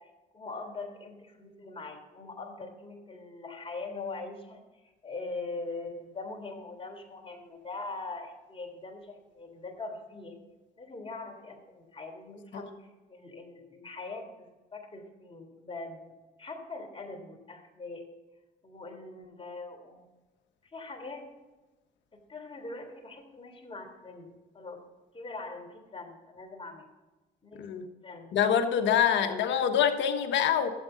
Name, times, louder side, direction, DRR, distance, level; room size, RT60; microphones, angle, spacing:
voice 1, 0.0-10.4 10.8-16.1 16.4-18.1 18.6-20.1 20.7-21.3 22.1-24.8 25.1-26.9 27.4-27.7 28.0-28.3 29.1-29.5, left 3 dB, 25° left, 2 dB, 3.4 m, -42 dB
voice 2, 28.3-30.7, left 8 dB, 65° left, 7 dB, 1.3 m, -25 dB
12.5 x 8.6 x 3.9 m, 1.2 s
hypercardioid pair, 50°, 20 cm